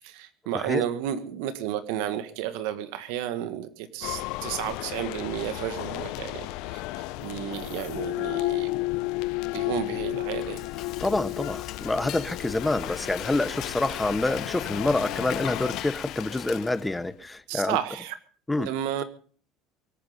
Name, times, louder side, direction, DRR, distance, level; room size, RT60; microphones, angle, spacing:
voice 1, 0.0-8.9 9.5-10.6 17.5-18.2 18.6-19.0, right 11 dB, 80° right, 1.7 m, -32 dB
sound 1, 4.0-15.8, left 20 dB, 65° left, 0.7 m, -33 dB
Frying (food), 10.1-17.1, left 12 dB, 45° left, 1.0 m, -38 dB
voice 2, 11.0-17.8 18.5-18.7, left 2 dB, 5° left, 0.8 m, -27 dB
24.0 x 9.5 x 5.1 m
cardioid pair, 155°, 0 cm